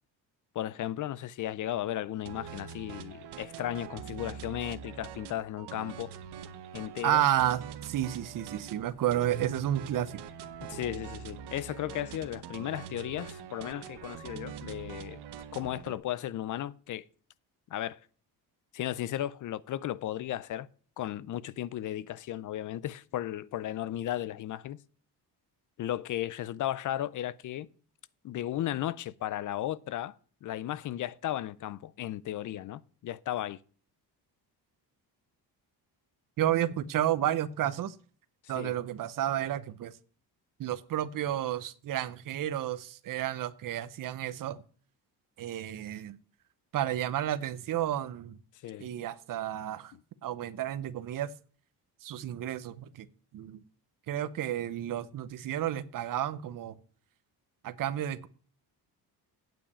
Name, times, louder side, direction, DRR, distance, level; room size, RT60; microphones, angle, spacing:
voice 1, 0.5-6.1 6.7-7.2 10.7-15.2 15.5-17.0 17.7-18.0 18.7-20.7 21.0-24.8 25.8-27.7 28.2-30.2 30.4-33.6 38.4-38.7 48.6-48.9, left 12 dB, 50° left, 0.5 m, -35 dB
sound 1, 2.3-16.0, right 7 dB, 80° right, 1.1 m, -44 dB
voice 2, 7.0-10.2 36.4-37.9 38.5-39.9 40.6-44.6 45.4-46.2 46.7-48.4 48.8-49.9 50.2-51.3 52.0-53.1 53.3-53.6 54.1-56.7 57.6-58.3, right 12 dB, 55° right, 0.8 m, -31 dB
9.0 x 5.7 x 8.2 m
cardioid pair, 145°, 40 cm